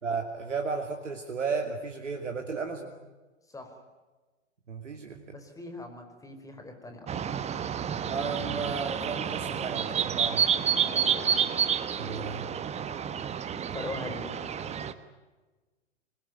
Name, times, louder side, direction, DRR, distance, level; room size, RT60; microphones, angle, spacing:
voice 1, 0.0-2.9 4.7-5.4 8.0-10.4 12.0-12.5, right 4 dB, 80° right, 3 dB, 2.7 m, -34 dB
voice 2, 5.3-7.4 10.8-11.5 13.7-14.3, left 2 dB, 10° left, 5 dB, 5.0 m, -41 dB
sound 1, 7.1-14.9, right 8 dB, 20° right, 1.3 m, -29 dB
26.0 x 21.0 x 9.4 m, 1.2 s
figure-of-eight pair, 105°, 36 cm